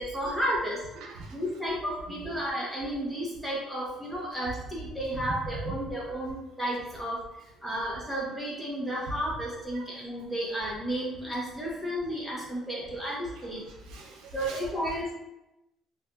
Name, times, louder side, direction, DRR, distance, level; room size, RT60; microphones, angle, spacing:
voice 1, 0.0-0.9 1.3-7.2 7.6-13.6 14.3-15.1, equal, ahead, -6 dB, 1.0 m, -32 dB
voice 2, 1.0-1.4 2.2-2.3 5.6-5.7 6.1-6.2 9.7-9.9 10.1-10.2 13.4-14.9, right 3 dB, 80° right, 0 dB, 0.6 m, -44 dB
3.2 x 2.6 x 2.4 m, 0.92 s
cardioid pair, 120°, 0 cm